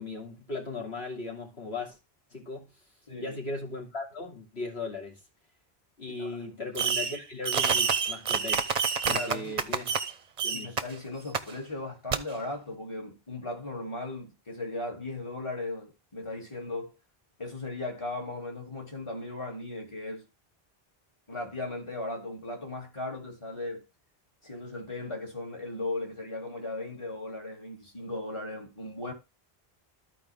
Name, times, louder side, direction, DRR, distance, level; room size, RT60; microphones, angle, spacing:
voice 1, 0.0-2.0 2.3-2.7 3.2-5.2 6.0-8.7 9.1-10.0 10.4-10.8, left 3 dB, 90° left, 3.0 m, -37 dB
Fireworks, 6.8-7.2 7.4-10.1 10.4-10.8 11.3-11.4 12.1-12.2, right 6 dB, 45° right, 0.7 m, -27 dB
voice 2, 9.1-9.6 10.5-16.9 17.4-20.3 21.3-23.8 24.4-29.1, left 2 dB, 30° left, 2.5 m, -37 dB
13.5 x 4.7 x 3.4 m
omnidirectional pair, 1.0 m